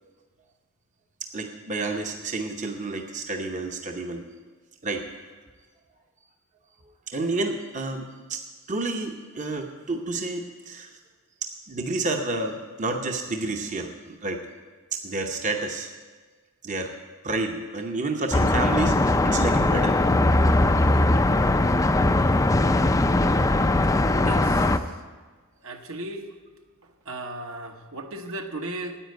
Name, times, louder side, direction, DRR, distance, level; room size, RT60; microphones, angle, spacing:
voice 1, 1.3-4.3 4.8-5.1 7.1-8.4 8.7-11.0 11.4-14.5 14.9-15.9 16.6-17.0 17.2-20.0, right 3 dB, 35° right, 3 dB, 0.8 m, -30 dB
sound 1, 18.3-24.8, left 2 dB, 15° left, 0.4 m, -20 dB
voice 2, 24.2-25.0 25.6-26.3 26.8-29.0, right 1 dB, 70° right, 4 dB, 1.1 m, -36 dB
9.9 x 8.5 x 9.3 m, 1.4 s
head